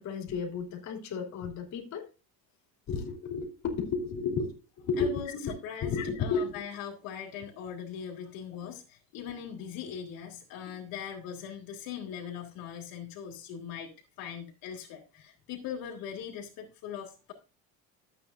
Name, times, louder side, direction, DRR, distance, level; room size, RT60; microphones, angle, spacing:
voice 1, 0.0-2.1 2.9-5.1 5.4-5.5 5.8-6.5, left 5 dB, 50° left, 1 dB, 2.9 m, -32 dB
voice 2, 5.0-13.9 14.2-17.3, left 8 dB, 65° left, 0 dB, 2.6 m, -40 dB
13.5 x 8.3 x 2.6 m, 0.30 s
cardioid pair, 140°, 37 cm